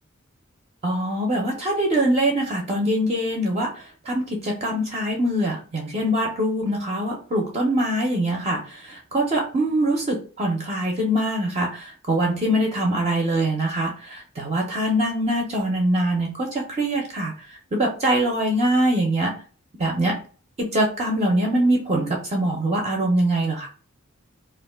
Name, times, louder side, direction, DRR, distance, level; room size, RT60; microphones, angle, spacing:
voice 1, 0.8-19.3 19.8-20.2 20.6-23.7, right 1 dB, 30° right, -1 dB, 0.5 m, -23 dB
2.4 x 2.1 x 3.3 m, 0.39 s
head